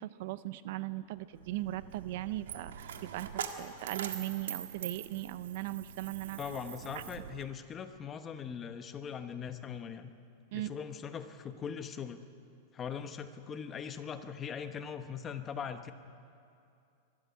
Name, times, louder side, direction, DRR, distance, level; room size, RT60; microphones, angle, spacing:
voice 1, 0.0-6.4 10.5-10.7, right 15 dB, 60° right, 15 dB, 0.7 m, -38 dB
Coin (dropping), 1.3-7.4, right 8 dB, 90° right, 1.7 m, -43 dB
voice 2, 6.4-10.1 10.5-12.2 12.7-15.9, left 7 dB, 20° left, 9 dB, 1.1 m, -41 dB
24.0 x 13.0 x 9.4 m, 2.5 s
supercardioid pair, 150°, 0 cm